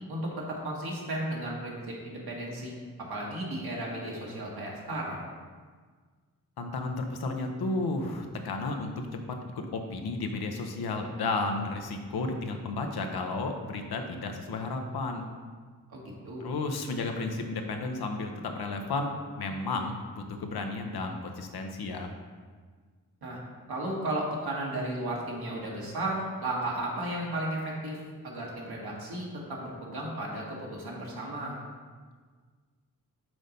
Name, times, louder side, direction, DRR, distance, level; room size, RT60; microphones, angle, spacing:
voice 1, 0.1-5.3 15.9-16.5 23.2-23.4 23.7-31.6, right 1 dB, 80° right, -3 dB, 1.7 m, -34 dB
voice 2, 6.6-9.4 9.7-15.3 16.4-22.1, left 3 dB, 85° left, 4 dB, 0.8 m, -33 dB
6.2 x 4.0 x 5.1 m, 1.5 s
cardioid pair, 60°, 37 cm